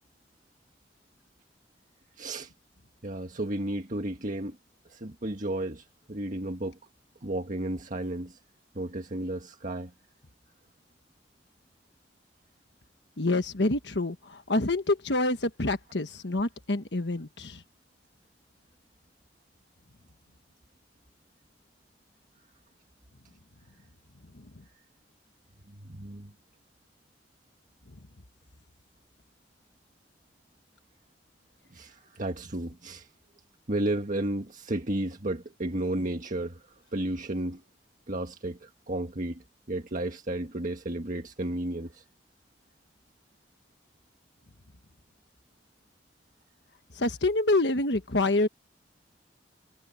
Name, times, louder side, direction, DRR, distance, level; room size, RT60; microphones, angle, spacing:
voice 1, 2.2-2.5 3.0-4.6 4.9-6.8 7.2-8.4 8.8-9.9 25.7-26.3 31.7-33.1 33.7-37.6 38.1-42.0, right 1 dB, 45° right, 1.7 m, -33 dB
voice 2, 13.2-17.6 24.4-24.5 46.9-48.5, left 2 dB, 70° left, 1.5 m, -27 dB
head